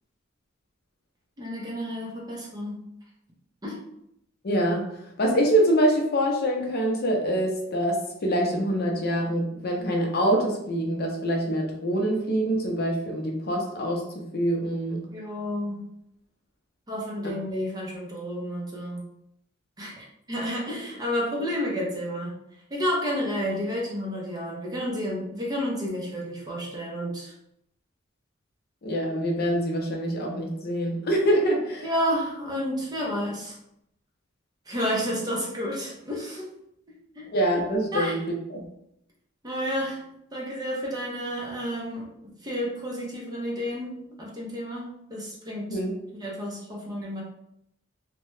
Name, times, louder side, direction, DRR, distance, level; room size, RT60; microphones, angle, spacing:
voice 1, 1.4-2.8 3.6-3.8 15.1-15.8 16.9-19.1 19.8-22.3 22.7-27.3 31.8-33.6 34.7-36.5 37.2-37.3 37.9-38.2 39.4-40.0 40.3-42.1 42.4-45.8 46.2-47.2, equal, 20° right, -3 dB, 0.7 m, -30 dB
voice 2, 4.4-4.9 5.2-15.0 28.8-31.9 37.3-38.2 38.5-38.7 45.7-45.9, right 1 dB, 50° left, 1 dB, 0.6 m, -25 dB
2.7 x 2.2 x 3.1 m, 0.77 s
head